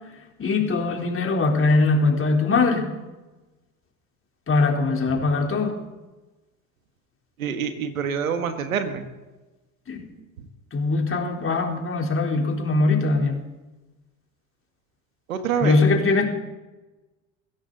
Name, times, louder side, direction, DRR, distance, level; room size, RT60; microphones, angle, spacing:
voice 1, 0.4-2.9 4.5-5.8 9.9-10.0 10.7-13.4 15.6-16.3, left 3 dB, 30° left, 1 dB, 3.7 m, -21 dB
voice 2, 7.4-9.0 10.4-10.5 15.3-15.8, right 7 dB, 85° right, 8 dB, 1.7 m, -26 dB
22.0 x 16.0 x 4.0 m, 1.1 s
hypercardioid pair, 70°, 40 cm